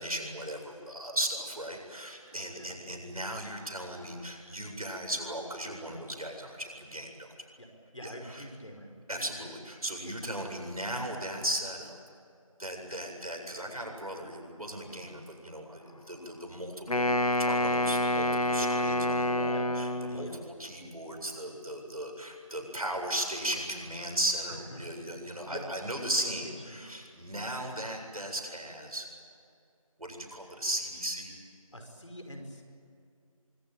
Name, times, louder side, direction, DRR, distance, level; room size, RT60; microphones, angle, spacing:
voice 1, 0.0-7.3 8.0-8.4 9.1-12.0 12.6-17.1 17.4-29.1 30.0-31.3, right 1 dB, 90° right, 2 dB, 8.0 m, -36 dB
voice 2, 7.9-9.5 19.5-19.6 20.1-20.4 25.4-25.7 26.2-26.8 31.7-32.6, left 1 dB, 60° left, 4 dB, 5.4 m, -45 dB
Wind instrument woodwind instrument, 16.9-20.4, left 1 dB, 80° left, 1.5 m, -28 dB
25.0 x 24.0 x 9.2 m, 2.4 s
figure-of-eight pair, 180°, 18 cm